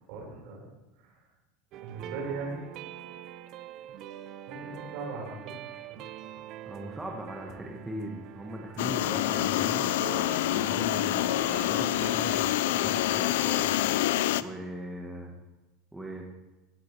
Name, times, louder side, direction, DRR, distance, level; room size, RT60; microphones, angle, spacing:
voice 1, 0.1-0.7 1.0-1.2 1.8-2.6 3.7-3.8 4.5-6.0, right 4 dB, 65° right, -1 dB, 4.7 m, -39 dB
sound 1, 1.7-12.6, right 12 dB, 40° right, 0.5 m, -44 dB
voice 2, 6.7-9.9 10.4-12.4 12.7-13.7 14.4-15.3 15.9-16.3, right 1 dB, 5° right, 0 dB, 1.2 m, -39 dB
sound 2, 8.8-14.4, left 14 dB, 85° left, 0.4 m, -27 dB
16.0 x 10.5 x 3.2 m, 1.1 s
supercardioid pair, 155°, 0 cm